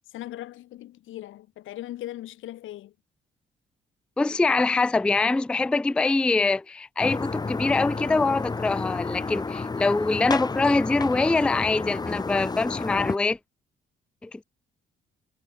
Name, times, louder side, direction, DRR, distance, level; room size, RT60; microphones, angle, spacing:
voice 1, 0.1-2.9, left 14 dB, 80° left, 1.8 m, -39 dB
voice 2, 4.2-13.4 14.2-14.4, left 3 dB, 5° left, 0.3 m, -24 dB
sound 1, 7.0-13.2, left 4 dB, 20° left, 0.8 m, -31 dB
cardioid pair, 90°, 20 cm